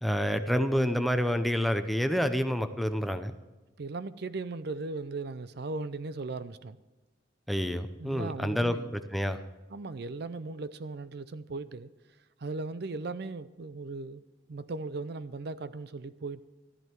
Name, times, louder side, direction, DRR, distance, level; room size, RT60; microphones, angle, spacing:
voice 1, 0.0-3.3 7.5-8.8 9.1-9.4, equal, ahead, 0.6 m, -28 dB
voice 2, 3.8-6.8 8.0-8.9 9.7-11.9 12.4-14.2 14.5-16.4, right 3 dB, 55° right, 0.5 m, -37 dB
13.5 x 11.0 x 4.6 m
head